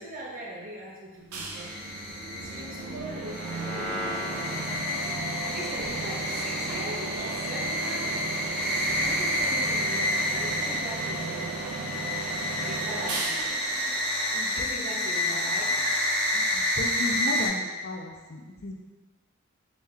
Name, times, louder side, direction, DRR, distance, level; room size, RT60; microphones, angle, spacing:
voice 1, 0.0-1.9 2.4-4.8 5.4-8.2 9.0-11.6 12.4-13.4 14.5-15.7, right 1 dB, 40° right, -4 dB, 0.7 m, -40 dB
sound 1, 1.3-14.8, right 3 dB, 75° right, 0.6 m, -36 dB
sound 2, 1.5-17.5, left 1 dB, 25° left, 0.8 m, -29 dB
voice 2, 14.3-15.6 16.3-18.8, left 2 dB, 45° left, 1 dB, 0.4 m, -36 dB
3.2 x 3.1 x 3.5 m, 1.3 s
head